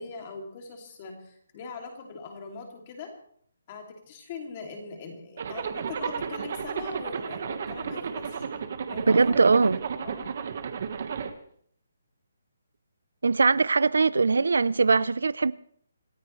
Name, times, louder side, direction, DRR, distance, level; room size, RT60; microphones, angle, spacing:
voice 1, 0.0-3.1 3.7-8.5 8.9-9.4 10.0-10.4, left 4 dB, 20° left, 2.7 m, -41 dB
Zipper (clothing), 5.4-11.3, right 6 dB, 35° right, 1.4 m, -33 dB
voice 2, 9.1-9.8 13.2-15.5, right 4 dB, 80° right, 0.6 m, -21 dB
27.0 x 15.0 x 3.2 m
hypercardioid pair, 180°, 0 cm